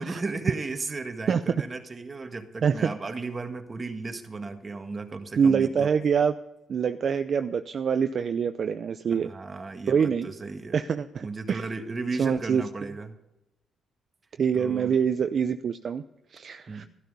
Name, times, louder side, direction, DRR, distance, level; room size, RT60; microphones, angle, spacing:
voice 1, 0.0-5.9 9.1-10.8 11.2-13.2 14.5-15.0 16.7-16.9, right 3 dB, 30° right, 6 dB, 1.8 m, -35 dB
voice 2, 5.4-6.3 6.7-9.3 9.9-10.3 10.7-11.6 12.2-12.6 14.4-16.0 16.3-16.9, right 6 dB, 55° right, 9 dB, 0.6 m, -25 dB
13.0 x 12.5 x 5.4 m, 0.92 s
cardioid pair, 90°, 0 cm